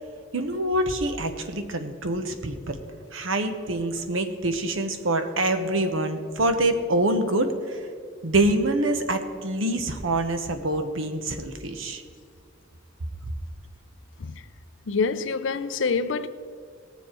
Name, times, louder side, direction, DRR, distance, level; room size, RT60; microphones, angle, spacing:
voice 1, 0.3-2.8 3.1-7.8 8.2-12.0, right 1 dB, 85° right, 1.0 m, -25 dB
voice 2, 14.9-16.3, left 4 dB, 70° left, 0.6 m, -26 dB
18.5 x 7.2 x 4.5 m
head